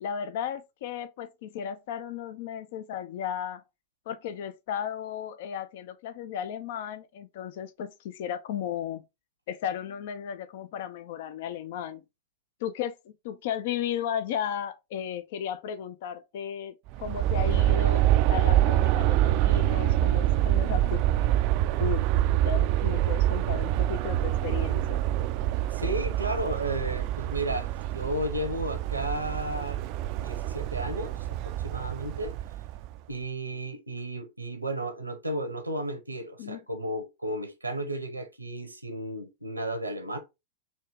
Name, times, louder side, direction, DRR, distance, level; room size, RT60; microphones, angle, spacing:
voice 1, 0.0-3.6 4.1-9.0 9.5-12.0 12.6-16.7 17.0-21.0 21.8-22.0 22.4-25.0 36.4-36.6, left 9 dB, 55° left, 0.5 m, -35 dB
Aircraft, 16.9-33.0, right 13 dB, 45° right, 0.3 m, -26 dB
voice 2, 25.7-29.8 30.1-32.3 33.1-40.2, right 1 dB, 85° right, 0.8 m, -33 dB
4.2 x 2.9 x 3.4 m
figure-of-eight pair, 90°, 0 cm